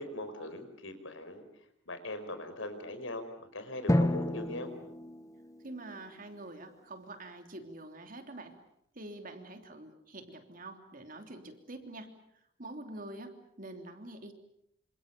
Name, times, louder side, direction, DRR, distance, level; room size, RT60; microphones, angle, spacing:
voice 1, 0.0-1.4 1.9-4.7, left 1 dB, 75° left, 9 dB, 5.0 m, -40 dB
Drum, 3.9-6.4, left 1 dB, 15° left, 1.0 m, -31 dB
voice 2, 5.6-8.6 8.9-12.1 12.6-14.3, right 2 dB, 45° right, 6 dB, 3.1 m, -46 dB
28.0 x 27.0 x 6.9 m, 0.74 s
head